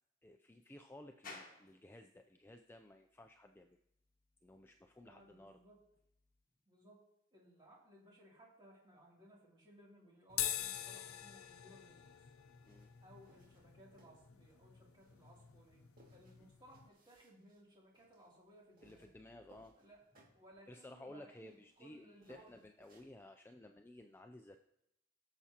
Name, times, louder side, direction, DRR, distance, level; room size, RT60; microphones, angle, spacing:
voice 1, 0.2-3.8 4.4-5.6 12.7-12.9 18.8-19.8 20.7-24.6, left 1 dB, 10° left, 5 dB, 0.3 m, -56 dB
sound 1, 1.2-18.7, left 3 dB, 40° left, 1.6 m, -65 dB
voice 2, 5.0-5.8 6.7-7.0 7.3-12.3 13.0-19.1 19.8-20.0 20.3-22.6, right 1 dB, 20° right, -4 dB, 2.8 m, -62 dB
sound 2, 10.3-16.9, left 11 dB, 90° left, 0.6 m, -45 dB
sound 3, 12.6-23.2, right 1 dB, 40° right, 2.2 m, -70 dB
18.0 x 7.0 x 2.9 m, 0.82 s
head